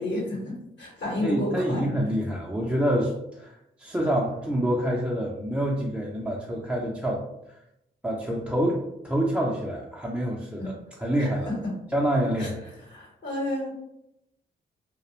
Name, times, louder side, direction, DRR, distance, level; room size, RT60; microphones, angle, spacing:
voice 1, 0.0-1.8 10.6-10.7 11.2-11.3 12.4-12.5 12.9-13.7, left 1 dB, 65° left, -3 dB, 0.9 m, -30 dB
voice 2, 1.2-7.2 7.5-7.6 8.0-11.5 11.9-12.6, equal, 5° right, -3 dB, 0.4 m, -27 dB
2.3 x 2.0 x 2.8 m, 0.83 s
cardioid pair, 70°, 20 cm